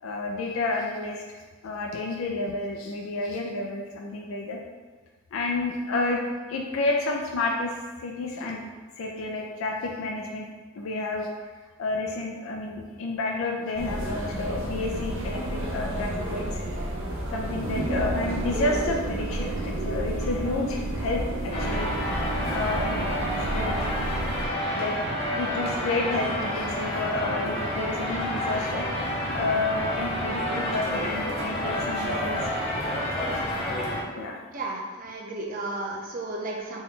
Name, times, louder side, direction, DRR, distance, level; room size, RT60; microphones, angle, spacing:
voice 1, 0.0-4.6 5.3-6.2 6.5-8.6 9.0-10.5 10.7-11.3 11.8-16.6 17.3-21.9 22.5-23.7 24.8-25.0 25.3-29.1 29.3-32.4 34.2-34.4, left 2 dB, 75° left, 0 dB, 0.4 m, -30 dB
sound 1, 13.8-24.5, right 1 dB, 75° right, 0.7 m, -31 dB
sound 2, 21.5-34.0, equal, 30° left, 0.6 m, -29 dB
voice 2, 34.5-36.8, right 2 dB, 40° right, -1 dB, 0.6 m, -34 dB
4.1 x 2.3 x 3.7 m, 1.3 s
head